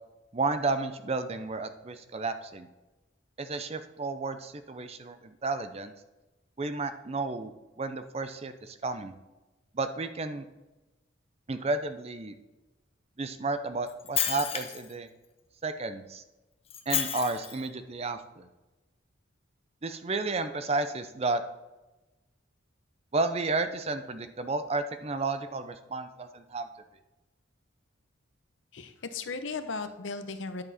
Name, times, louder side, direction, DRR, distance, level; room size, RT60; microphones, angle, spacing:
voice 1, 0.3-2.7 3.4-5.9 6.6-9.1 9.7-10.5 11.5-12.3 13.2-15.1 15.6-16.2 16.9-18.5 19.8-21.4 23.1-26.7, right 3 dB, 30° right, 10 dB, 0.5 m, -32 dB
Shatter, 13.9-14.9 16.7-17.6, left 9 dB, 30° left, 0.6 m, -31 dB
voice 2, 28.7-30.6, left 4 dB, 75° left, 9 dB, 0.8 m, -36 dB
10.5 x 7.2 x 4.2 m, 1.1 s
head